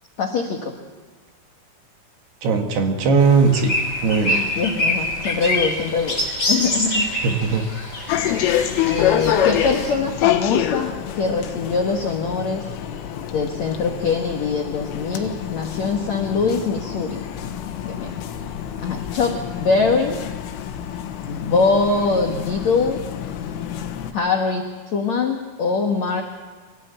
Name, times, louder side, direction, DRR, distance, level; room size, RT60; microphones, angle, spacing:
voice 1, 0.2-0.7 4.2-6.2 6.5-7.1 8.9-12.6 13.3-17.2 17.8-18.1 18.8-20.2 21.3-23.0 24.1-26.2, left 4 dB, 65° left, 2 dB, 1.8 m, -23 dB
voice 2, 2.4-3.7 4.0-4.4 7.2-7.7, right 5 dB, 65° right, 5 dB, 3.4 m, -18 dB
sound 1, 3.2-9.9, left 1 dB, 15° left, 5.5 m, -25 dB
sound 2, 8.1-24.1, left 10 dB, 85° left, 3.9 m, -27 dB
25.0 x 17.0 x 8.9 m, 1.4 s
omnidirectional pair, 5.7 m